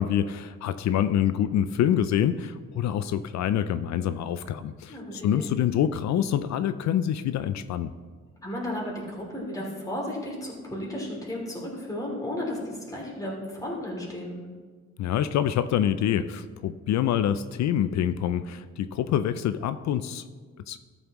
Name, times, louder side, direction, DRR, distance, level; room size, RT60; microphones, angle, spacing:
voice 1, 0.0-7.9 15.0-20.2 20.7-20.8, left 10 dB, 65° left, 12 dB, 0.5 m, -26 dB
voice 2, 4.9-5.5 8.4-14.3, left 1 dB, 10° left, -3 dB, 2.8 m, -34 dB
13.0 x 7.1 x 3.0 m, 1.5 s
cardioid pair, 90°, 30 cm